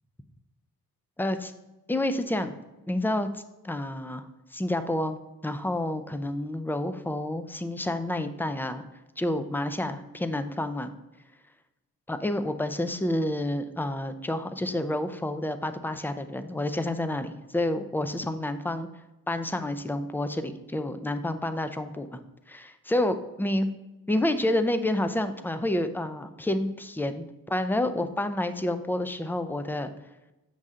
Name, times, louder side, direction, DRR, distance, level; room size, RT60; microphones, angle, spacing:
voice 1, 1.2-1.5 1.9-2.5 2.9-5.2 5.4-8.8 9.2-10.9 12.1-18.9 19.3-22.2 22.5-22.6 22.9-23.7 24.1-29.9, left 1 dB, 5° left, 10 dB, 0.4 m, -29 dB
7.8 x 5.4 x 3.6 m, 1.0 s
wide cardioid pair, 120°, 36 cm